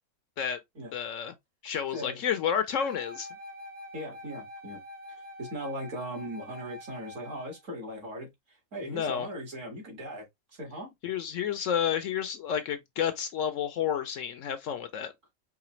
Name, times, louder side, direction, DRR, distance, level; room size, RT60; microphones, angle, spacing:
voice 1, 0.9-1.3 1.6-3.3 8.8-9.3 11.0-15.1, left 8 dB, 70° left, 0.9 m, -30 dB
Wind instrument woodwind instrument, 2.7-7.6, left 1 dB, 30° right, 1.0 m, -46 dB
voice 2, 3.9-4.8 5.1-10.2 10.5-10.9, equal, 60° right, 2.4 m, -39 dB
4.9 x 3.2 x 3.1 m
omnidirectional pair, 1.5 m